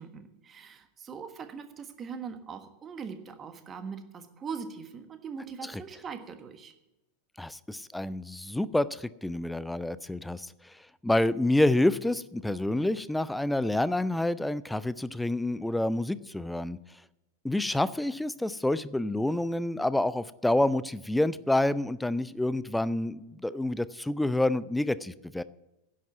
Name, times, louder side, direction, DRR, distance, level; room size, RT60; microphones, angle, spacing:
voice 1, 0.0-6.7, right 6 dB, 25° right, 9 dB, 1.4 m, -41 dB
voice 2, 7.4-10.7 11.0-16.8 17.4-25.4, left 1 dB, 5° left, 17 dB, 0.5 m, -28 dB
10.5 x 7.6 x 9.3 m, 0.95 s
figure-of-eight pair, 90°, 0 cm